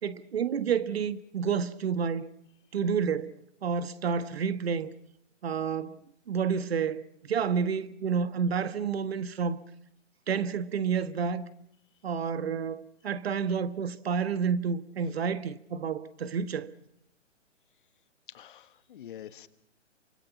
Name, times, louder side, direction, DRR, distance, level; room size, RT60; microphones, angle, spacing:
voice 1, 0.0-2.3 2.7-3.3 3.6-4.9 5.4-6.0 6.3-9.6 10.3-11.5 12.0-16.7, right 6 dB, 55° right, 1.5 m, -29 dB
voice 2, 18.3-19.5, left 10 dB, 40° left, 1.5 m, -46 dB
28.5 x 25.0 x 5.9 m
figure-of-eight pair, 135°, 37 cm